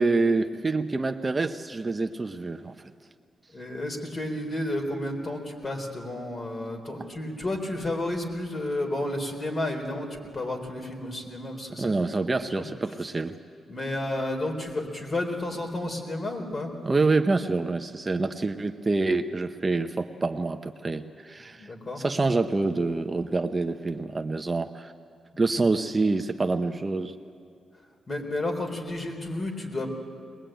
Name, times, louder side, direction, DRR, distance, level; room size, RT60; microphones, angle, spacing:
voice 1, 0.0-2.7 11.8-13.4 16.8-21.7 22.0-24.9 25.4-27.1, right 3 dB, 25° right, 7 dB, 0.7 m, -26 dB
voice 2, 3.5-10.1 10.3-12.3 12.6-12.7 13.7-16.7 21.6-22.0 28.1-29.9, left 1 dB, 35° left, 3 dB, 4.1 m, -31 dB
21.5 x 21.0 x 9.0 m, 2.3 s
cardioid pair, 95°, 0 cm